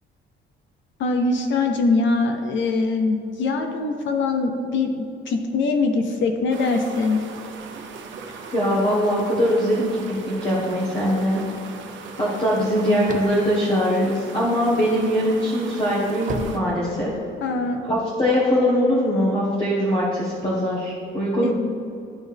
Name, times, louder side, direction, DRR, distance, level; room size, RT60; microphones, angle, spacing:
voice 1, 1.0-7.2 17.4-17.8 21.4-21.5, left 3 dB, 70° left, 5 dB, 0.6 m, -22 dB
sound 1, 6.5-16.6, right 5 dB, 70° right, 0.8 m, -39 dB
voice 2, 8.5-11.4 12.2-17.1 17.8-21.5, equal, 25° left, -7 dB, 1.2 m, -22 dB
sound 2, 13.0-14.7 15.2-17.5, right 4 dB, 40° right, 0.5 m, -34 dB
12.0 x 4.2 x 3.4 m, 2.6 s
cardioid pair, 165°, 20 cm